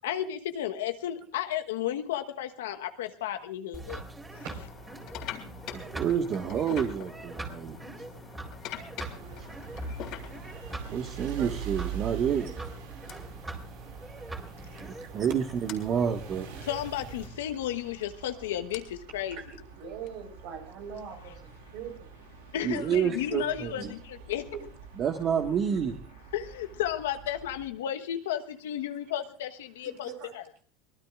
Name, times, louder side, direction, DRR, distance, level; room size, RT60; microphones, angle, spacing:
voice 1, 0.0-4.0 4.4-4.5 16.6-19.4 22.5-24.0 24.3-24.5 26.3-30.4, left 11 dB, 90° left, 7 dB, 1.2 m, -33 dB
sound 1, 3.7-17.3, right 2 dB, 15° right, 3.8 m, -43 dB
sound 2, 4.3-11.1 11.9-12.1 13.1-13.2 14.5-14.6 14.8-15.0 15.7-15.8 17.6-20.7, left 10 dB, 60° left, 3.4 m, -44 dB
voice 2, 5.7-7.8 10.9-12.4 14.8-16.5 22.6-23.9 25.0-25.9, right 8 dB, 45° right, 4 dB, 1.6 m, -29 dB
sound 3, 9.1-27.7, right 9 dB, 85° right, 2.5 m, -44 dB
voice 3, 14.6-15.1 19.3-19.4 19.7-22.2 23.8-23.9 24.5-24.7 25.7-25.8 29.8-30.3, right 7 dB, 65° right, 4 dB, 4.6 m, -42 dB
24.0 x 19.0 x 2.5 m, 0.38 s
supercardioid pair, 100°, 0 cm